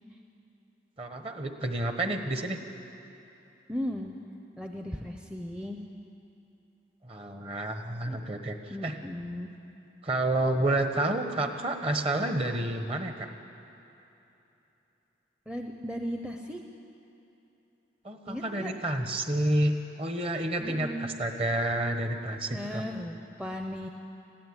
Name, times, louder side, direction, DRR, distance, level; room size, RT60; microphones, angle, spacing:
voice 1, 1.0-2.6 7.0-8.5 8.8-8.9 10.0-13.3 18.0-22.8, right 1 dB, 30° right, 6 dB, 1.3 m, -29 dB
voice 2, 3.7-4.1 4.6-5.8 8.0-8.3 8.7-9.5 15.5-16.6 18.3-18.7 20.6-21.1 22.5-23.9, equal, 5° right, 2 dB, 0.8 m, -36 dB
19.5 x 14.5 x 9.8 m, 2.9 s
head